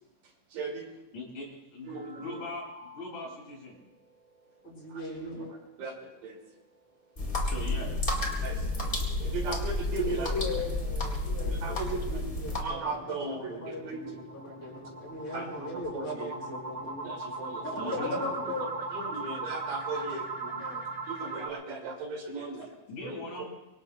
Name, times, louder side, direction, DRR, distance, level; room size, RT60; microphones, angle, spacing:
voice 1, 0.5-0.9 1.8-2.4 4.9-5.0 5.8-6.4 8.4-8.7 9.2-10.3 11.5-12.2 12.6-14.1 15.3-16.3 17.0-17.9 18.9-20.6 21.1-22.7 23.0-23.4, right 3 dB, 80° right, 0 dB, 4.2 m, -37 dB
voice 2, 1.1-1.5 1.7-3.8 7.4-7.9 17.8-18.2 22.9-23.5, left 2 dB, 80° left, -3 dB, 7.4 m, -40 dB
sound 1, 1.9-3.4 3.8-3.9 4.2-4.3 4.8-4.9 9.7-21.5, right 3 dB, 55° right, 4.8 m, -40 dB
voice 3, 4.6-5.6 10.0-17.1 17.6-18.7 19.9-20.0 20.4-20.8 22.6-22.7, left 1 dB, 50° left, -2 dB, 6.5 m, -38 dB
sound 2, 7.2-12.6, left 2 dB, 20° left, 1.6 m, -31 dB
25.0 x 23.5 x 2.3 m, 0.94 s
omnidirectional pair, 3.7 m